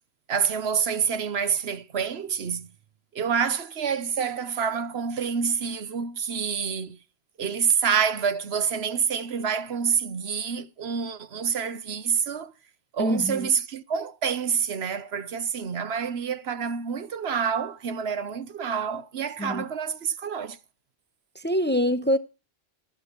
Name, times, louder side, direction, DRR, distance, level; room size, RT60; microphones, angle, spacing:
voice 1, 0.3-2.7 3.1-7.0 7.4-12.5 12.9-20.6, right 6 dB, 75° right, 1.2 m, -27 dB
voice 2, 13.0-13.4 19.4-19.6 21.4-22.2, equal, 10° left, 0.6 m, -24 dB
13.5 x 12.0 x 4.5 m
omnidirectional pair, 1.1 m